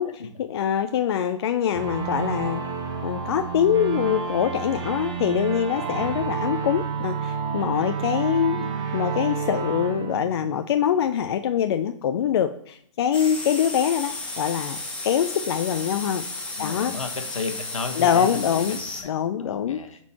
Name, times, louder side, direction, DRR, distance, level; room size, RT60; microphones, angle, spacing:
voice 1, 0.4-2.6 3.0-8.7 8.9-14.8 15.0-16.2 16.6-16.9 18.0-18.8 19.0-19.8, left 9 dB, 50° left, 9 dB, 0.4 m, -24 dB
sound 1, 1.7-11.1, right 6 dB, 25° right, 1.2 m, -30 dB
sound 2, 13.1-19.0, left 2 dB, 5° left, 1.3 m, -33 dB
voice 2, 16.6-19.1 19.4-20.0, left 4 dB, 80° left, 6 dB, 1.2 m, -33 dB
8.1 x 4.5 x 4.2 m, 0.70 s
hypercardioid pair, 130°, 17 cm